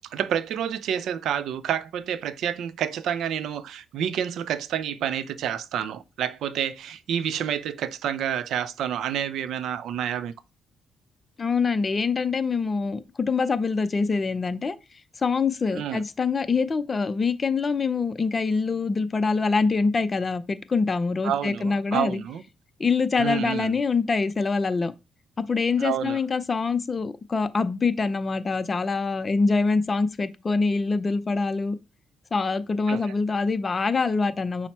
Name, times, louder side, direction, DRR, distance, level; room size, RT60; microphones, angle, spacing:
voice 1, 0.1-10.3 15.7-16.0 21.2-22.4 23.2-23.8 25.8-26.2 32.9-33.1, right 9 dB, 75° right, 0.4 m, -29 dB
voice 2, 11.4-14.8 15.2-22.2 22.8-24.9 25.4-31.8 32.3-34.7, left 4 dB, 30° left, 0.5 m, -25 dB
5.7 x 2.1 x 4.2 m
cardioid pair, 90°, 0 cm